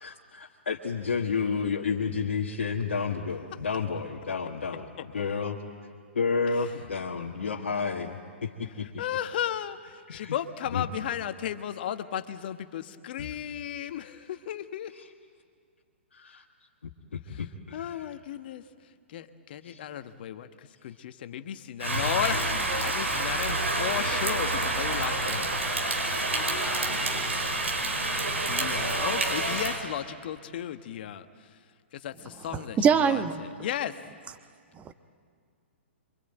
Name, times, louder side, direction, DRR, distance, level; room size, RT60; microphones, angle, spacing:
voice 1, 0.0-4.9 5.1-5.6 6.1-8.9 10.1-10.3 10.7-10.9 13.2-13.3 14.9-15.0 16.1-16.4 16.8-18.0 19.6-19.8 24.5-24.6, left 5 dB, 70° left, -1 dB, 1.6 m, -31 dB
voice 2, 9.0-14.9 17.3-17.4 17.7-18.6 19.1-25.5 28.4-31.5 31.9-34.0, left 10 dB, 50° left, 10 dB, 1.3 m, -35 dB
Rain, 21.8-29.8, right 2 dB, 80° right, 4.7 m, -28 dB
voice 3, 32.8-33.4 34.9-35.0, right 7 dB, 20° right, 10 dB, 1.2 m, -22 dB
27.0 x 24.5 x 9.2 m, 2.1 s
figure-of-eight pair, 120°, 7 cm